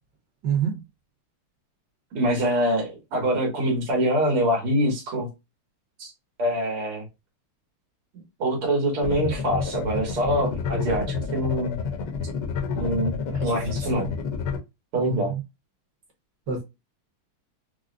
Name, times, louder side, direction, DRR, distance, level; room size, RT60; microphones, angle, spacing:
voice 1, 0.4-0.8 13.4-13.9 15.0-15.4 16.5-16.6, right 7 dB, 60° right, 1.6 m, -28 dB
voice 2, 2.1-5.3 6.0-6.1 6.4-7.1 8.4-11.8 12.7-14.1 14.9-15.3, equal, 90° right, 2.1 m, -25 dB
sound 1, 9.0-14.6, left 5 dB, 70° left, 1.2 m, -29 dB
4.8 x 2.0 x 2.4 m
omnidirectional pair, 2.3 m